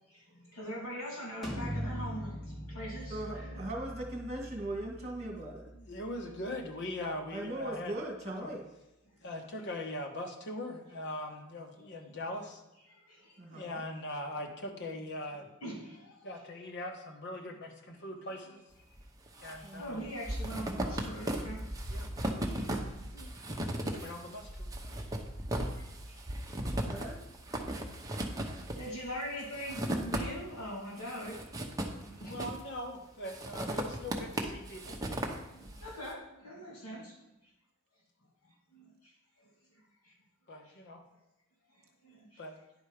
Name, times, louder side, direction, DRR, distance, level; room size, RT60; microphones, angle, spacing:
voice 1, 0.1-2.4 2.7-3.6 11.8-11.9 12.9-13.4 15.6-16.4 19.4-21.6 22.4-23.0 24.8-25.1 25.7-26.2 28.8-31.6 32.2-32.5 35.5-37.1 38.7-38.9 39.4-39.5 40.0-40.1 40.6-40.8 42.0-42.4, equal, 85° left, -4 dB, 2.8 m, -43 dB
sound 1, 1.4-7.1, equal, ahead, 1.3 m, -42 dB
voice 2, 3.1-5.7 7.3-8.6 13.4-13.8 19.6-20.1 26.7-27.3, right 1 dB, 30° right, 2 dB, 1.9 m, -39 dB
voice 3, 5.3-8.0 8.4-8.5 9.2-12.6 13.5-15.5 16.2-18.6 19.4-20.0 21.9-22.1 23.1-23.5 24.0-24.7 28.1-28.6 31.9-35.0 36.9-37.1 40.5-41.0 42.4-42.6, left 1 dB, 55° left, 3 dB, 1.2 m, -41 dB
sound 2, 19.0-19.6 19.8-30.6 31.0-32.8 33.3-35.9, right 1 dB, 15° right, 0.9 m, -36 dB
10.0 x 4.5 x 5.0 m, 0.94 s
head